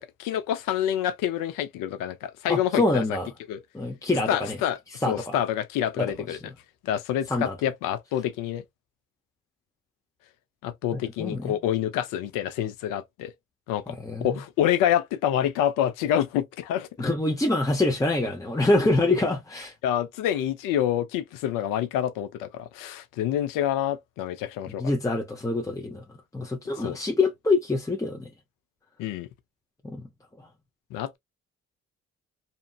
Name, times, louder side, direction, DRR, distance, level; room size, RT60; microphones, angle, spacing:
voice 1, 0.0-3.0 3.5-3.6 4.3-4.8 5.1-6.4 6.8-8.6 10.6-13.3 13.7-13.9 14.2-16.9 19.8-24.9 26.8-27.0 29.0-29.3 30.9-31.2, left 11 dB, 85° left, 0.6 m, -27 dB
voice 2, 2.5-3.3 3.7-4.6 5.0-5.4 6.0-6.5 7.3-7.6 10.9-11.6 13.9-14.4 17.0-19.7 24.8-26.0 26.3-28.3 29.8-30.1 30.4-30.5, left 2 dB, 10° left, 0.7 m, -26 dB
2.8 x 2.5 x 2.3 m
supercardioid pair, 50°, 32 cm